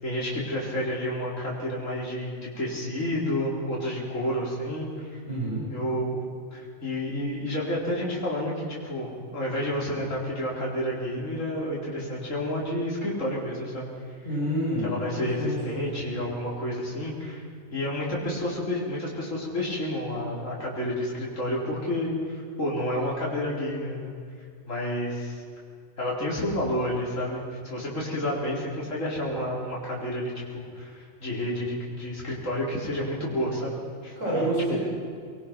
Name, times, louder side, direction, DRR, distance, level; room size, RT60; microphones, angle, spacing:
voice 1, 0.0-5.2 5.7-6.2 6.5-13.8 14.8-17.4 17.7-24.1 24.7-25.4 26.0-33.7 34.0-34.5, left 1 dB, 65° left, -4 dB, 4.4 m, -30 dB
voice 2, 5.3-5.6 14.2-14.9 15.2-15.5 34.2-34.8, right 1 dB, 75° right, -7 dB, 7.2 m, -27 dB
24.0 x 22.0 x 6.0 m, 2.2 s
omnidirectional pair, 1.4 m